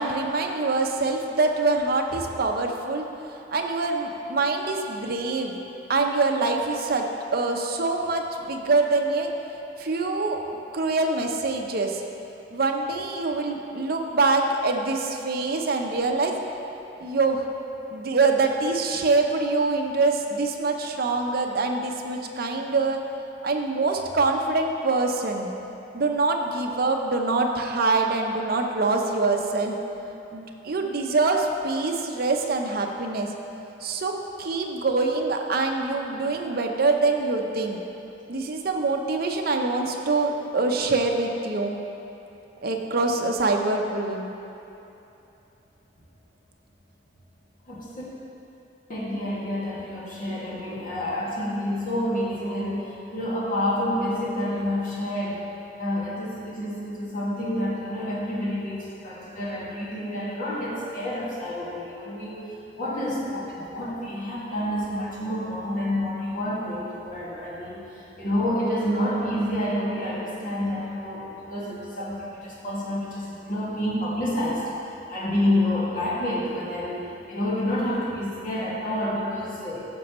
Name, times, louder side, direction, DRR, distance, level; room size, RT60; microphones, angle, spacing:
voice 1, 0.0-3.0 3.3-5.6 5.9-7.0 7.3-9.3 9.8-10.4 10.7-12.0 12.5-16.3 17.0-17.5 17.9-23.0 23.4-25.5 25.9-29.7 30.3-33.3 33.8-37.8 38.3-41.8 42.6-44.3 50.3-50.4, right 3 dB, 55° right, 3 dB, 0.7 m, -24 dB
voice 2, 48.9-55.4 55.8-62.5 62.8-74.6 75.1-77.0 77.3-79.9, left 1 dB, 45° left, -7 dB, 2.0 m, -28 dB
14.0 x 6.1 x 3.0 m, 2.9 s
head